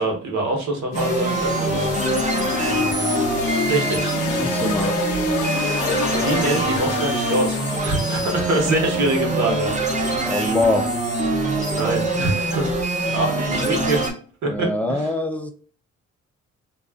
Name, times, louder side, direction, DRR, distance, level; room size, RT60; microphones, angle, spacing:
voice 1, 0.0-1.9 3.7-4.2 5.7-10.2 11.7-12.8 13.1-14.0 14.4-15.1, right 2 dB, 70° right, 1 dB, 1.1 m, -25 dB
sound 1, 0.9-8.0, left 7 dB, 85° left, 0.5 m, -27 dB
sound 2, 0.9-14.1, right 2 dB, 25° right, 0.9 m, -24 dB
voice 2, 4.2-5.0 9.5-9.6 10.1-10.9 13.5-13.9 14.4-15.5, left 2 dB, 5° left, 5 dB, 0.4 m, -24 dB
2.5 x 2.3 x 2.3 m, 0.42 s
cardioid pair, 90°, 30 cm